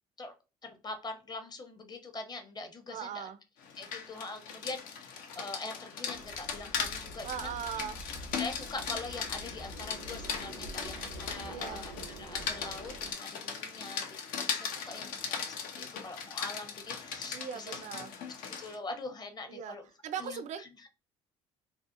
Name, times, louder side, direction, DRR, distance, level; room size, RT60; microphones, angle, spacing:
voice 1, 0.6-3.3 3.8-7.6 8.1-17.8 18.3-19.8 20.2-20.9, left 3 dB, 30° left, 0.7 m, -43 dB
voice 2, 2.9-3.4 7.2-8.0 11.5-11.9 17.3-18.2 19.5-19.8 20.0-20.9, right 8 dB, 55° right, 0.4 m, -39 dB
Rain, 3.6-18.8, left 6 dB, 70° left, 0.5 m, -39 dB
sound 1, 6.1-13.1, right 1 dB, 90° right, 0.7 m, -47 dB
2.7 x 2.0 x 2.5 m
hypercardioid pair, 65°, 15 cm